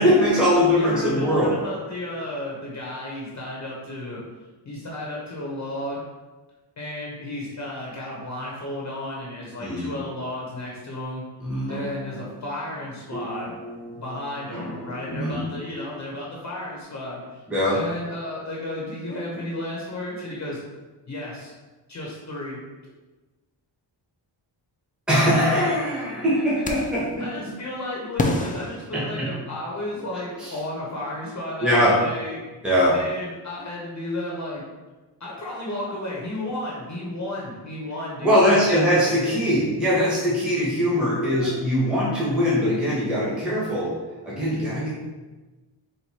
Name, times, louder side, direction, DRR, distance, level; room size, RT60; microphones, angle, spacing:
voice 1, 0.0-1.5 9.6-9.9 11.4-11.7 15.1-15.4 17.5-17.8 25.1-27.2 28.9-29.3 30.4-30.5 31.6-32.0 32.6-32.9 38.2-43.9 44.2-44.9, equal, ahead, -8 dB, 1.1 m, -21 dB
voice 2, 0.5-4.2 4.6-6.0 6.8-11.2 11.7-13.6 13.9-17.4 17.7-20.6 21.1-21.5 21.9-22.6 27.2-32.4 32.9-34.6 35.2-39.3 41.3-41.6, left 1 dB, 40° left, -4 dB, 0.9 m, -33 dB
sound 1, 11.6-16.8, equal, 20° right, 1.3 m, -40 dB
sound 2, 26.6-27.1 28.2-29.7, left 2 dB, 20° left, 0.4 m, -28 dB
4.6 x 2.6 x 4.1 m, 1.2 s
wide cardioid pair, 130°, 44 cm